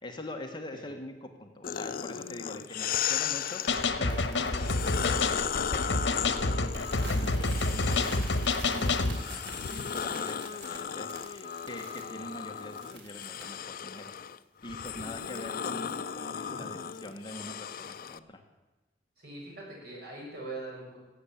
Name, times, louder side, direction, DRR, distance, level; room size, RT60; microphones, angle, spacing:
voice 1, 0.0-5.4 5.7-6.1 6.4-8.3 8.6-14.1 14.6-18.4, left 1 dB, 25° left, 4 dB, 1.3 m, -44 dB
sound 1, 1.6-3.9 4.5-8.6 9.0-18.2, left 8 dB, 55° left, 0.5 m, -36 dB
sound 2, 3.3-5.8 6.0-6.3 6.6-13.5, right 3 dB, 85° right, 3.2 m, -48 dB
sound 3, 3.7-9.2, left 3 dB, 80° left, 1.1 m, -28 dB
voice 2, 19.2-21.0, right 2 dB, 60° right, -3 dB, 6.1 m, -42 dB
16.0 x 7.9 x 8.6 m, 1.2 s
head